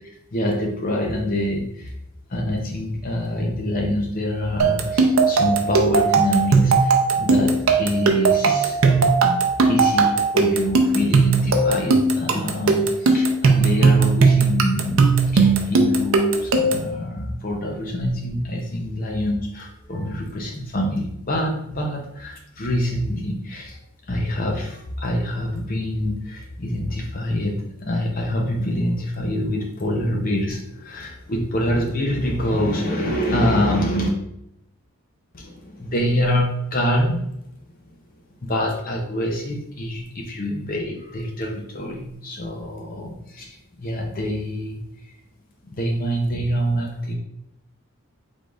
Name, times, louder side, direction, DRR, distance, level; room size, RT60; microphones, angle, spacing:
voice 1, 0.3-1.9 2.3-9.0 9.7-15.1 15.3-23.8 24.1-34.1 35.3-37.2 38.4-44.8 45.7-47.1, equal, 40° left, 0 dB, 0.6 m, -25 dB
sound 1, 4.6-16.9, right 4 dB, 65° right, 0.6 m, -18 dB
5.0 x 3.8 x 2.4 m, 0.79 s
head